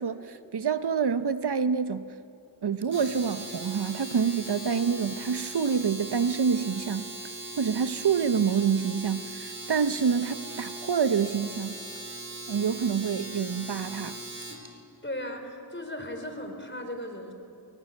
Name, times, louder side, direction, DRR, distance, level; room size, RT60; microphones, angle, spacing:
voice 1, 0.0-2.2 2.6-7.1 7.6-11.7 12.5-14.2, right 6 dB, 65° right, 0.8 m, -27 dB
Domestic sounds home sounds, 2.8-14.7, right 1 dB, 25° right, 4.0 m, -39 dB
voice 2, 15.0-17.3, left 1 dB, 25° left, 4.2 m, -36 dB
23.0 x 19.5 x 8.4 m
cardioid pair, 40°, 43 cm